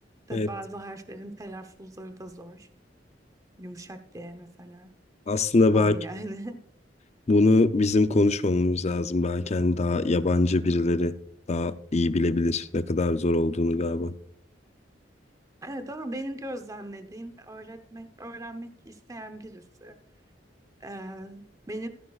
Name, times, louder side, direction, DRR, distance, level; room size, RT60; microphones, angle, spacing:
voice 1, 0.3-2.7 3.6-4.9 5.7-6.6 15.6-20.0 20.8-21.9, right 1 dB, 20° right, 0.8 m, -39 dB
voice 2, 5.3-6.0 7.3-11.1 11.5-14.1, left 2 dB, 40° left, 0.5 m, -23 dB
15.0 x 11.0 x 2.4 m
head